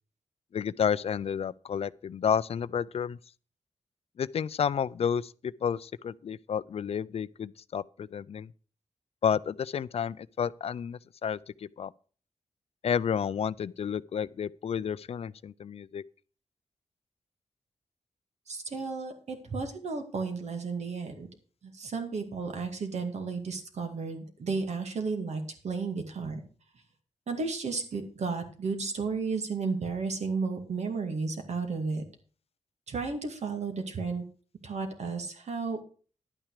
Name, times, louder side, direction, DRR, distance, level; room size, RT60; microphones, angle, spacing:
voice 1, 0.5-3.2 4.2-8.5 9.2-11.4 11.8-11.9 12.8-16.0, left 7 dB, 60° left, 0.4 m, -31 dB
voice 2, 18.5-21.3 21.6-26.4 27.3-32.0 32.9-34.3 34.6-35.8, right 4 dB, 70° right, 2.2 m, -33 dB
11.0 x 9.0 x 4.9 m
wide cardioid pair, 95°, 12 cm